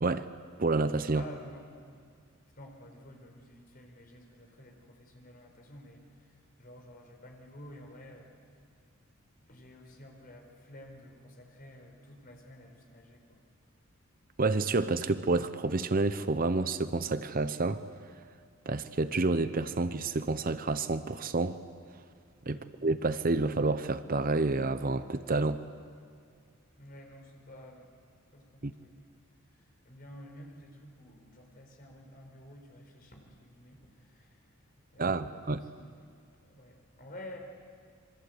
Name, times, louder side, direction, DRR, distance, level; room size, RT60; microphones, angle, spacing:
voice 1, 0.6-1.2 14.4-17.8 18.7-21.6 22.5-25.6 28.6-28.7 35.0-35.6, right 3 dB, 40° right, 12 dB, 0.8 m, -29 dB
voice 2, 1.1-1.7 2.6-8.3 9.5-13.4 22.5-22.7 26.8-27.9 28.3-28.9 29.8-34.4 34.9-36.2 36.4-37.4, left 1 dB, 45° left, 2 dB, 4.5 m, -51 dB
27.0 x 24.0 x 8.0 m, 2.2 s
head